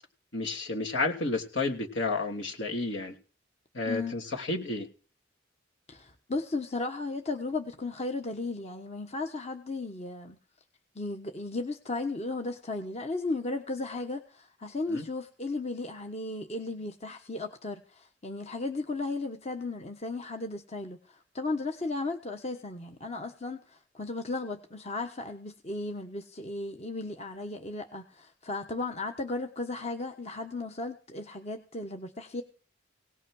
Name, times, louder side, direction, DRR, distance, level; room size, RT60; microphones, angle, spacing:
voice 1, 0.3-3.2 3.7-4.9 14.9-15.0, left 3 dB, 70° left, 2 dB, 2.9 m, -31 dB
voice 2, 5.9-10.4 10.9-32.4, left 3 dB, 35° left, 4 dB, 1.2 m, -35 dB
18.0 x 6.2 x 6.4 m, 0.39 s
head